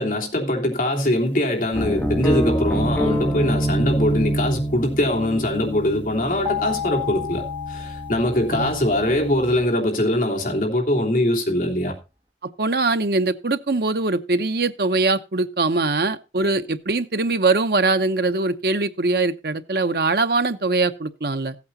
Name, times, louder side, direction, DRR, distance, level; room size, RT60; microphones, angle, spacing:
voice 1, 0.0-7.4 7.7-11.9, left 1 dB, 50° left, 3.1 m, -22 dB
sound 1, 1.7-9.6, right 1 dB, 10° left, 2.3 m, -26 dB
sound 2, 6.4-9.4, left 9 dB, 25° right, 1.1 m, -32 dB
voice 2, 12.4-21.5, right 3 dB, 60° right, 0.9 m, -22 dB
15.0 x 8.5 x 4.1 m
head